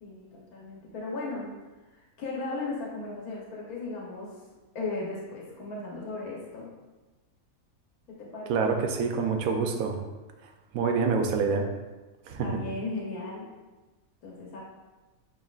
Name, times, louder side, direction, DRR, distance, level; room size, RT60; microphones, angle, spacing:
voice 1, 0.0-1.5 1.9-4.4 4.7-6.7 8.1-8.6 12.4-13.5 14.2-14.6, left 3 dB, 85° left, -4 dB, 1.4 m, -36 dB
voice 2, 8.5-10.0 10.7-11.7 12.3-12.6, right 5 dB, 80° right, 4 dB, 1.0 m, -26 dB
7.5 x 3.0 x 2.4 m, 1.2 s
omnidirectional pair, 1.5 m